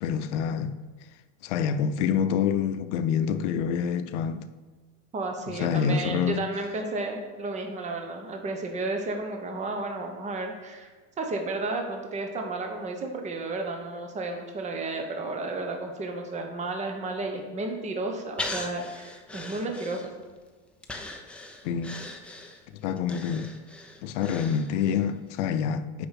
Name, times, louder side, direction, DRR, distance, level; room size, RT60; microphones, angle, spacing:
voice 1, 0.0-0.8 1.4-4.5 5.5-6.5 21.6-22.0 22.7-23.5 24.0-26.1, left 7 dB, 75° left, 0.6 m, -27 dB
voice 2, 5.1-10.9 11.2-20.2, right 2 dB, 20° right, 0.9 m, -32 dB
Breathing, 18.4-20.4 20.8-25.0 25.4-25.5, left 2 dB, 5° left, 0.4 m, -39 dB
6.7 x 5.1 x 5.8 m
supercardioid pair, 140°, 36 cm